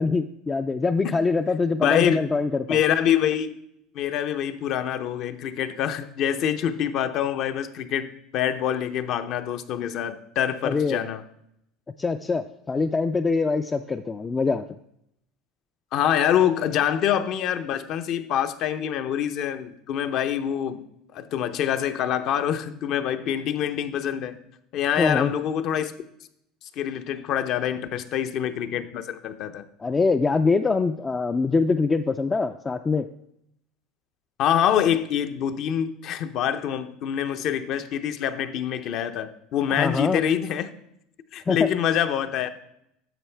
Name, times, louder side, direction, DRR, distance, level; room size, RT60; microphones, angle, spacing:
voice 1, 0.0-2.8 10.6-11.0 12.0-14.7 25.0-25.3 29.8-33.1 39.7-40.2 41.5-41.7, left 4 dB, 20° left, 8 dB, 0.3 m, -24 dB
voice 2, 1.8-2.2 2.7-3.5 3.9-11.2 15.9-20.8 21.1-24.4 24.7-25.9 26.8-29.6 34.4-40.7 41.3-42.5, left 9 dB, 55° left, 9 dB, 0.6 m, -25 dB
10.0 x 6.9 x 3.4 m, 0.76 s
supercardioid pair, 110°, 0 cm